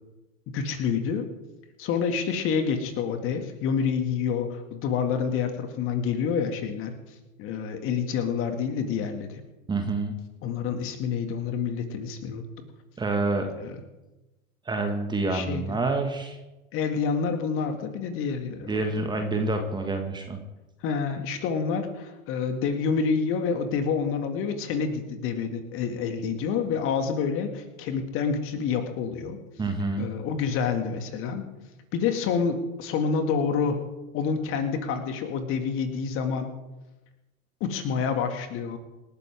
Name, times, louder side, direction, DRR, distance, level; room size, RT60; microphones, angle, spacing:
voice 1, 0.5-1.3 1.8-6.9 7.4-9.3 10.4-12.6 13.6-13.8 15.3-15.8 16.7-19.0 20.8-29.4 30.0-31.5 31.9-33.8 34.1-36.6 37.6-38.8, left 6 dB, 30° left, 6 dB, 2.2 m, -28 dB
voice 2, 9.7-10.2 13.0-13.5 14.7-16.4 18.7-20.4 29.6-30.1, right 3 dB, 10° right, 4 dB, 1.8 m, -27 dB
27.5 x 12.5 x 3.6 m, 1.1 s
figure-of-eight pair, 100°, 41 cm